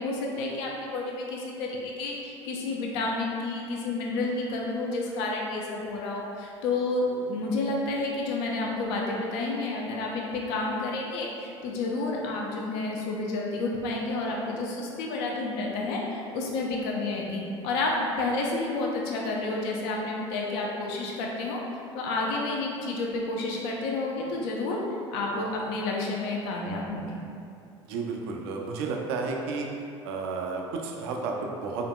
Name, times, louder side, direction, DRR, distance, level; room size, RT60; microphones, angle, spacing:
voice 1, 0.0-21.6 21.9-24.8 25.1-27.2, left 2 dB, 60° left, -1 dB, 0.6 m, -30 dB
voice 2, 27.8-29.7 30.0-31.9, right 4 dB, 60° right, 1 dB, 0.5 m, -32 dB
3.8 x 3.4 x 2.2 m, 2.5 s
figure-of-eight pair, 65°, 15 cm